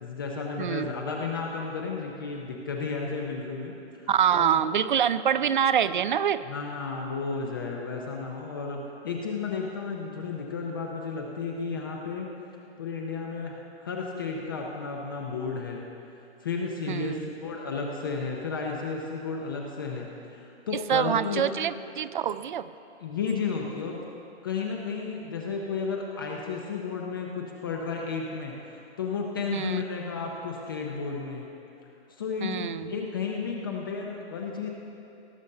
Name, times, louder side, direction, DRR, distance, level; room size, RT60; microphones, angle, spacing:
voice 1, 0.0-4.5 6.5-12.4 12.8-15.9 16.4-21.5 23.0-24.0 24.4-31.5 32.1-34.7, left 5 dB, 20° left, 0 dB, 0.5 m, -33 dB
voice 2, 0.6-0.9 4.1-6.4 16.9-17.3 20.9-22.7 29.5-29.8 32.4-32.9, right 9 dB, 50° right, 15 dB, 0.4 m, -25 dB
17.5 x 6.8 x 6.5 m, 2.8 s
hypercardioid pair, 165°, 33 cm